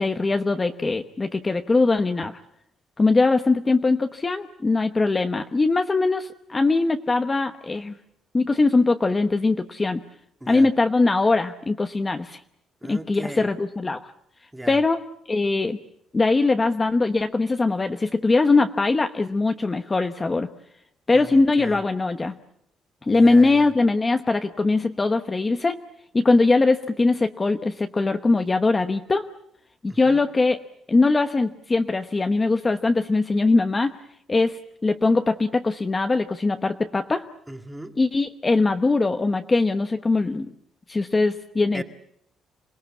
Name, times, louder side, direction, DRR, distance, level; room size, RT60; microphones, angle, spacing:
voice 1, 0.0-2.4 3.0-7.9 8.3-10.0 10.5-12.4 12.8-14.1 14.7-15.0 15.3-15.8 16.1-20.5 21.1-22.4 23.0-25.8 26.1-29.3 29.8-30.6 30.9-33.9 34.3-37.3 38.0-40.5 40.9-41.8, left 3 dB, 20° left, 7 dB, 1.0 m, -21 dB
voice 2, 12.8-13.5 14.5-14.8 21.1-21.8 23.1-23.7 29.9-30.2 37.5-38.0 41.7-41.8, right 1 dB, 10° right, 6 dB, 1.8 m, -38 dB
27.0 x 19.5 x 8.4 m, 0.74 s
cardioid pair, 135°, 0 cm